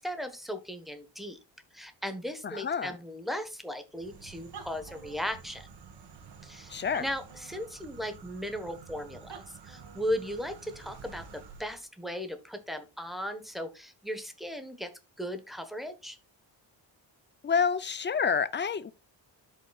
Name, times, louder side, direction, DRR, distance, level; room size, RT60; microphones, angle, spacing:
voice 1, 0.0-1.4 1.7-5.7 6.4-6.7 7.0-14.9 15.2-16.2, equal, ahead, 1.2 m, -37 dB
voice 2, 2.4-2.9 6.7-7.1 17.4-18.9, left 6 dB, 25° left, 0.5 m, -28 dB
sound 1, 3.9-11.8, right 6 dB, 60° right, 1.8 m, -49 dB
12.5 x 5.4 x 2.3 m
wide cardioid pair, 135°, 45 cm